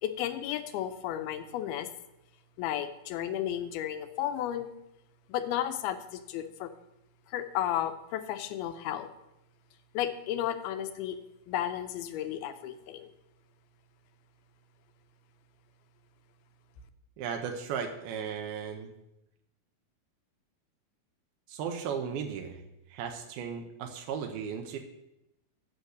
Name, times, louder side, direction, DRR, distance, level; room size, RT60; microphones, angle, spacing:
voice 1, 0.0-1.9 2.6-4.7 5.3-6.7 7.3-9.1 9.9-11.2 11.5-13.1, left 11 dB, 90° left, 9 dB, 2.6 m, -33 dB
voice 2, 17.2-18.9 21.5-22.6 22.9-24.8, right 7 dB, 85° right, 4 dB, 2.6 m, -36 dB
8.0 x 6.5 x 6.5 m, 0.88 s
omnidirectional pair, 4.3 m